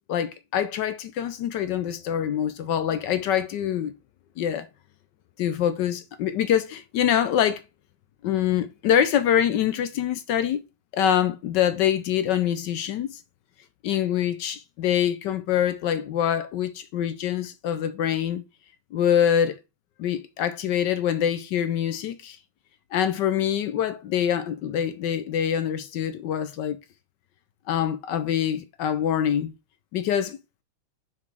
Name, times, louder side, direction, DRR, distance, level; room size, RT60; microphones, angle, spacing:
voice 1, 0.1-3.9 4.4-4.7 5.4-7.6 8.2-10.6 10.9-13.2 13.8-18.4 18.9-19.6 20.0-22.4 22.9-26.8 27.7-29.5 29.9-30.4, left 9 dB, 70° left, 1.1 m, -25 dB
6.0 x 5.9 x 3.3 m
omnidirectional pair, 2.2 m